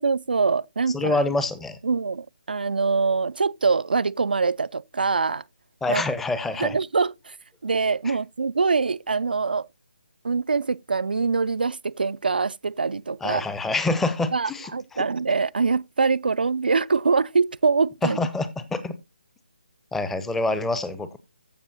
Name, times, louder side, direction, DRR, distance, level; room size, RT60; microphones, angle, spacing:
voice 1, 0.0-1.2 1.8-5.4 5.9-6.0 6.6-7.4 7.6-9.7 10.2-13.4 14.3-18.2, right 4 dB, 70° right, 0.5 m, -24 dB
voice 2, 0.9-1.8 5.8-6.8 8.1-8.2 13.2-15.0 18.0-18.9 19.9-21.2, left 2 dB, 5° left, 0.7 m, -26 dB
15.0 x 6.0 x 2.8 m
figure-of-eight pair, 150°, 5 cm